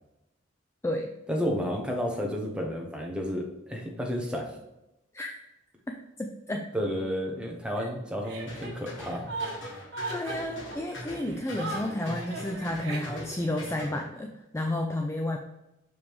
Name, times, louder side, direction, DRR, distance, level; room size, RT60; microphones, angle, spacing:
voice 1, 1.3-4.6 6.7-9.2, equal, 5° right, 0 dB, 1.0 m, -31 dB
voice 2, 5.9-6.7 7.8-7.9 10.1-15.4, left 1 dB, 15° left, 3 dB, 0.3 m, -32 dB
Chuckle chortle, 8.2-13.5, right 3 dB, 60° right, 1.5 m, -38 dB
sound 1, 8.4-14.1, left 1 dB, 70° left, 1.7 m, -42 dB
6.2 x 4.8 x 3.5 m, 0.90 s
head